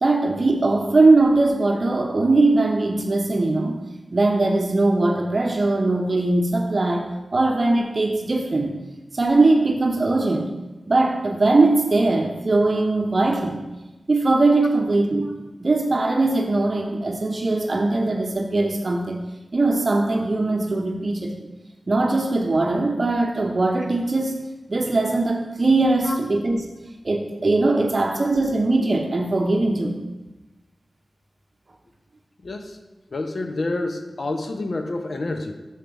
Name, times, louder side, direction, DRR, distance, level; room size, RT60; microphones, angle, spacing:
voice 1, 0.0-7.1 7.3-8.7 9.1-10.5 10.9-13.6 14.1-15.3 15.6-19.2 19.5-21.3 21.9-24.4 24.7-26.6 27.0-30.0, right 2 dB, 50° right, 2 dB, 0.7 m, -20 dB
voice 2, 32.4-32.8 33.1-35.5, left 2 dB, 65° left, 5 dB, 0.6 m, -28 dB
6.5 x 4.5 x 5.3 m, 1.1 s
wide cardioid pair, 70°, 0 cm